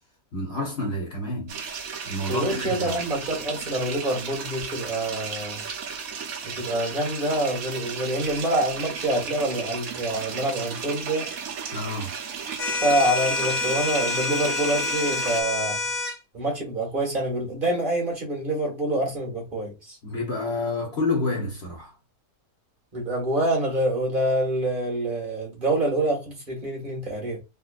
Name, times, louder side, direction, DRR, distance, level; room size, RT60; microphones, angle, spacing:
voice 1, 0.3-1.6 2.1-3.0 11.7-12.2 20.0-21.9, left 2 dB, 45° left, 1.3 m, -29 dB
sound 1, 1.5-15.4, right 6 dB, 70° right, 1.2 m, -34 dB
voice 2, 2.3-5.6 6.4-11.3 12.8-15.8 16.3-20.0 22.9-27.4, right 1 dB, 35° right, 1.7 m, -26 dB
sound 2, 12.6-16.2, left 4 dB, 65° left, 1.2 m, -27 dB
4.2 x 2.9 x 2.4 m
omnidirectional pair, 1.6 m